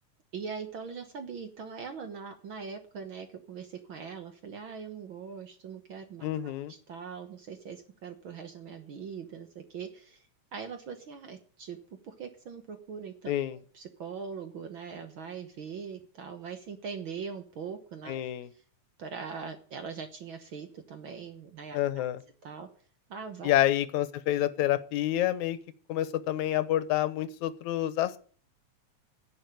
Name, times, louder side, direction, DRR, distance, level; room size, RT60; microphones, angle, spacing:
voice 1, 0.3-10.3 10.5-11.8 12.0-18.2 19.0-22.0 22.4-22.7 23.1-23.5, right 6 dB, 55° right, 8 dB, 1.5 m, -41 dB
voice 2, 6.2-6.7 13.3-13.6 18.1-18.5 21.7-22.2 23.4-25.6 25.9-28.2, left 13 dB, 80° left, 15 dB, 2.2 m, -28 dB
10.5 x 7.1 x 9.5 m, 0.43 s
omnidirectional pair, 3.3 m